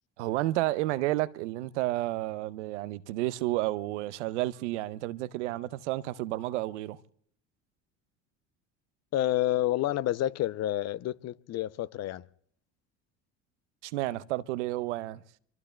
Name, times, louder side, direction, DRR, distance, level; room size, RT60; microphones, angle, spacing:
voice 1, 0.2-7.0 13.8-15.2, right 17 dB, 85° right, 0.6 m, -31 dB
voice 2, 9.1-12.2, left 13 dB, 50° left, 0.6 m, -29 dB
24.0 x 24.0 x 2.2 m
hypercardioid pair, 70°, 35 cm